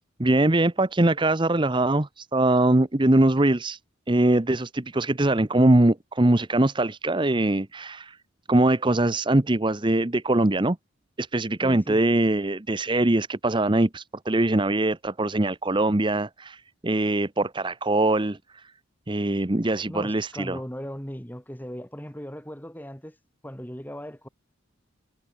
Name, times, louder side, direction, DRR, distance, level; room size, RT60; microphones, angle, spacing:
voice 1, 0.2-3.8 4.1-8.2 8.5-10.8 11.2-18.4 19.1-20.6, right 2 dB, 25° right, 0.8 m, -22 dB
voice 2, 11.6-12.0 19.9-23.2 23.4-24.3, equal, 10° left, 2.4 m, -38 dB
head